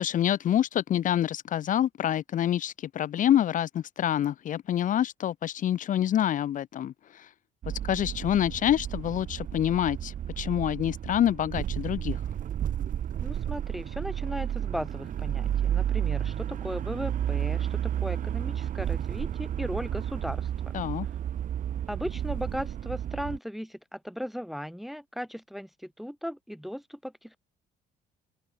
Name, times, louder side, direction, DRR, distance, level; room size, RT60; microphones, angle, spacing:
voice 1, 0.0-7.3 7.8-12.2 20.7-21.1, left 11 dB, 50° left, 0.8 m, -27 dB
sound 1, 7.6-23.4, right 10 dB, 50° right, 1.5 m, -32 dB
voice 2, 13.2-20.8 21.9-27.4, equal, ahead, 0.9 m, -37 dB
open air
cardioid pair, 110°, 17 cm